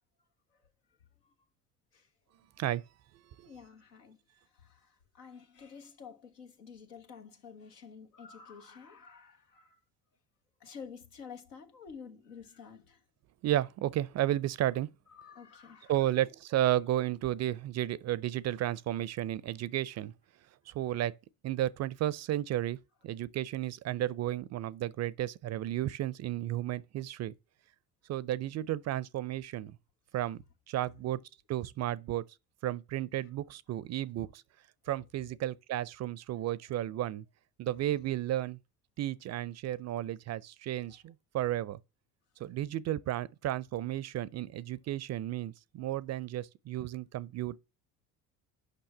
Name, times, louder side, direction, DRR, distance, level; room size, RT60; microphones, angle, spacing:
voice 1, 3.4-9.8 10.6-13.0 15.1-16.1 33.2-33.3 40.9-41.0, left 6 dB, 80° left, 1.2 m, -50 dB
voice 2, 13.4-14.9 15.9-20.1 20.7-21.1 21.4-22.8 23.0-27.3 28.1-29.8 30.1-31.2 31.5-32.2 32.6-34.4 34.9-37.2 37.6-38.6 39.0-41.8 42.4-47.6, right 13 dB, 35° right, 0.5 m, -33 dB
6.6 x 5.5 x 7.1 m
figure-of-eight pair, 60°, 47 cm